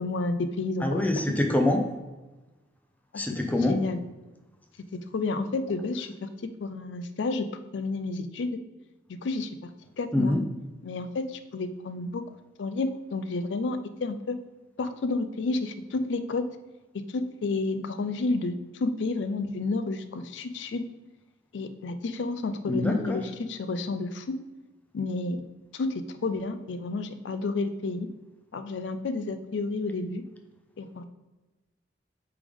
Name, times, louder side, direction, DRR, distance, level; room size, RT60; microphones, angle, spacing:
voice 1, 0.0-1.2 3.5-4.0 5.1-7.5 7.7-8.6 9.2-9.5 10.0-10.4 10.8-12.2 12.6-14.4 14.8-16.4 17.1-20.8 21.5-24.4 24.9-25.4 25.7-28.1 28.5-30.2 30.8-31.0, left 3 dB, 85° left, 10 dB, 0.4 m, -30 dB
voice 2, 0.8-1.8 3.2-3.8 10.1-10.4 22.6-23.2, left 1 dB, 10° left, 3 dB, 0.5 m, -25 dB
8.3 x 3.5 x 3.5 m, 1.1 s
head